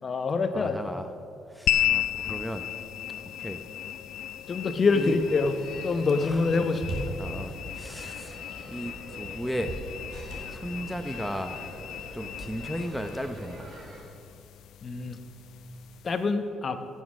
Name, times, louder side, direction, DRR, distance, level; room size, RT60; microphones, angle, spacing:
voice 1, 0.0-0.8 4.5-5.5 5.8-7.1 14.8-15.2 16.0-16.8, left 4 dB, 40° left, 9 dB, 0.8 m, -25 dB
voice 2, 0.5-1.1 1.5-2.7 3.4-3.6 4.9-5.1 6.2-6.5 7.2-9.7 10.5-11.6 12.1-13.7, equal, ahead, 7 dB, 0.7 m, -35 dB
sound 1, 1.7-16.3, left 12 dB, 75° left, 0.4 m, -35 dB
sound 2, 4.8-14.0, right 2 dB, 65° right, 3.3 m, -42 dB
16.0 x 7.4 x 6.3 m, 2.6 s
cardioid pair, 110°, 0 cm